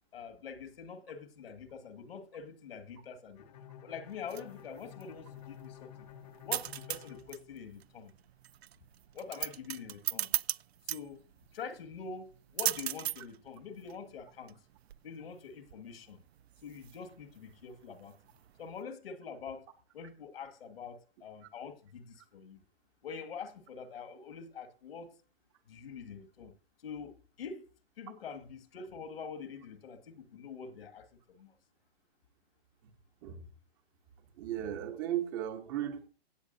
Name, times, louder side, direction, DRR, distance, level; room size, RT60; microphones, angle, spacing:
voice 1, 0.1-3.5 3.8-6.1 6.4-8.1 9.1-10.3 10.9-11.2 11.5-14.6 15.0-16.2 16.6-18.1 18.6-19.7 19.9-22.6 23.0-25.2 25.7-26.5 26.8-27.7 28.0-31.6, left 6 dB, 70° left, 2.0 m, -45 dB
Bowed string instrument, 3.3-8.2, left 10 dB, 40° left, 1.1 m, -52 dB
sound 1, 4.0-18.8, right 12 dB, 90° right, 0.5 m, -40 dB
voice 2, 34.4-36.1, right 11 dB, 20° right, 0.9 m, -36 dB
17.0 x 8.3 x 2.7 m
hypercardioid pair, 165°, 31 cm